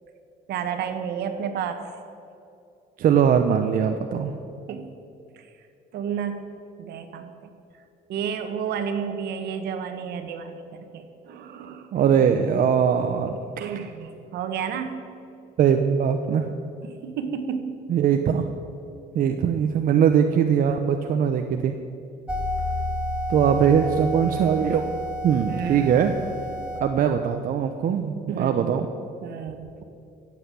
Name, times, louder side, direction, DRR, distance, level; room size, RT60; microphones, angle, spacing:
voice 1, 0.5-1.9 4.7-4.9 5.4-5.5 5.9-6.5 6.8-7.3 8.1-10.6 10.9-11.9 13.6-15.1 16.8-17.8 25.5-25.9 28.3-28.7 29.2-29.8, right 7 dB, 75° right, 8 dB, 1.5 m, -31 dB
voice 2, 3.0-4.3 11.9-13.4 15.6-16.5 17.9-18.5 19.1-21.7 23.3-24.8 25.2-26.1 26.8-28.9, right 8 dB, 55° right, 6 dB, 0.9 m, -21 dB
sound 1, 22.3-26.8, equal, 5° right, 2.3 m, -30 dB
15.0 x 8.2 x 8.4 m, 2.6 s
cardioid pair, 110°, 17 cm